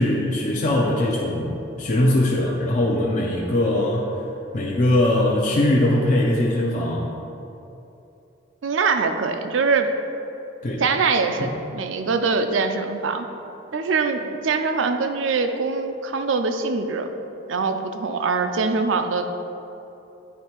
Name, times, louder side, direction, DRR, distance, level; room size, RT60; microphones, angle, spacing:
voice 1, 0.0-4.1 4.5-7.1 10.6-10.8 11.4-11.5, left 1 dB, 40° left, -3 dB, 0.6 m, -21 dB
voice 2, 8.6-9.9 10.8-13.3 13.7-17.1 17.5-19.3, right 4 dB, 85° right, 7 dB, 0.5 m, -23 dB
9.4 x 3.2 x 4.5 m, 2.9 s
head